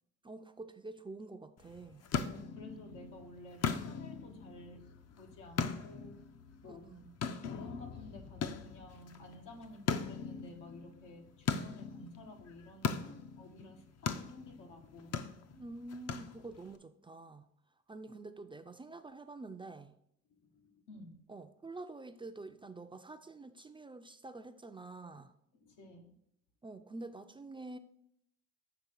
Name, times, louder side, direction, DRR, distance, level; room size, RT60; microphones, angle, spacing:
voice 1, 0.2-2.0 6.6-7.2 15.6-17.5 17.9-19.9 21.3-25.3 26.6-27.8, right 2 dB, 15° right, 9 dB, 0.4 m, -47 dB
sound 1, 1.6-16.8, left 6 dB, 55° left, 0.6 m, -40 dB
voice 2, 2.3-6.2 6.6-6.9 7.5-15.2 20.3-21.2 25.5-26.2, left 2 dB, 85° left, 3 dB, 1.1 m, -53 dB
7.0 x 3.2 x 6.1 m, 0.73 s
cardioid pair, 90°, 30 cm